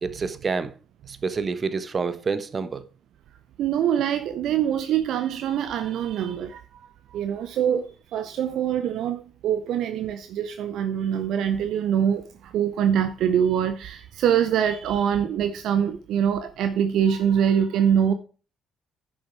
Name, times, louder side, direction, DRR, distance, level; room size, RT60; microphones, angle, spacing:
voice 1, 0.0-0.7 1.1-2.8, right 4 dB, 35° right, 1.1 m, -28 dB
voice 2, 3.6-18.1, right 9 dB, 60° right, 0.6 m, -24 dB
10.5 x 6.4 x 4.5 m
figure-of-eight pair, 45°, 0 cm